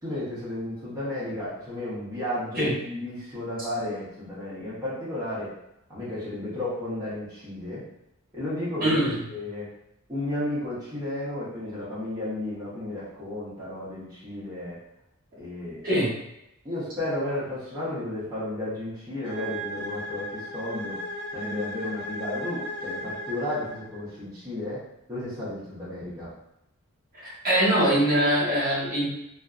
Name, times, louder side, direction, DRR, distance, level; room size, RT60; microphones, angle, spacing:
voice 1, 0.0-5.5 5.9-7.8 8.3-9.0 9.3-9.7 10.1-14.8 15.4-16.1 16.6-21.0 21.3-24.8 25.1-26.3, left 1 dB, 15° right, -11 dB, 0.7 m, -33 dB
voice 2, 8.8-9.2 15.8-16.1 27.2-29.0, right 1 dB, 40° right, -6 dB, 0.9 m, -23 dB
sound 1, 19.2-24.1, equal, 25° left, 0.9 m, -36 dB
2.6 x 2.4 x 2.3 m, 0.84 s
head